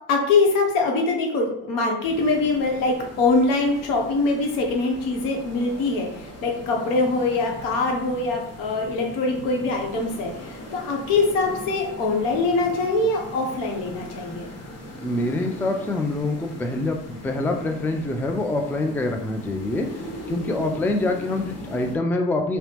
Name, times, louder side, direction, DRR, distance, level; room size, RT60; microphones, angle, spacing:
voice 1, 0.1-14.5, left 3 dB, 70° left, 1 dB, 0.8 m, -23 dB
sound 1, 2.0-22.0, equal, 45° left, 1.1 m, -39 dB
voice 2, 15.0-19.9 20.3-22.6, left 2 dB, 5° left, 4 dB, 0.3 m, -25 dB
2.8 x 2.0 x 3.2 m, 0.74 s
hypercardioid pair, 60°, 34 cm